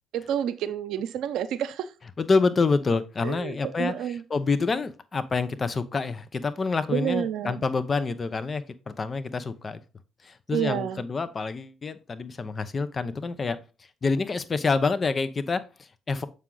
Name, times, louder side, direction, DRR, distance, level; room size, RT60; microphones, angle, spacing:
voice 1, 0.1-1.9 3.2-4.2 6.9-7.6 10.5-11.0, right 10 dB, 75° right, 0.6 m, -29 dB
voice 2, 2.2-9.8 10.2-13.6 14.0-16.3, left 4 dB, 40° left, 0.8 m, -27 dB
7.1 x 5.0 x 3.9 m
supercardioid pair, 55°, 0 cm